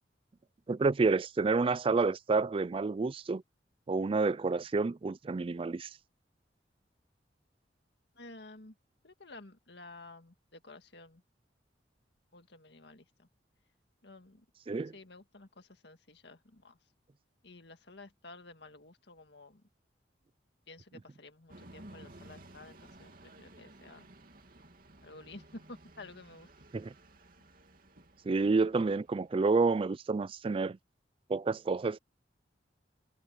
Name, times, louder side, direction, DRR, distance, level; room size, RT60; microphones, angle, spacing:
voice 1, 0.7-3.4 3.9-5.9 14.7-14.9 26.7-26.9 28.3-30.8 31.3-32.0, right 4 dB, 30° right, 0.3 m, -29 dB
voice 2, 8.2-8.8 9.0-11.2 12.3-13.3 14.0-14.5 14.9-16.8 17.4-19.6 20.7-24.1 25.0-26.5, left 2 dB, 65° left, 1.9 m, -52 dB
sound 1, 21.5-29.5, right 1 dB, 50° right, 2.9 m, -55 dB
head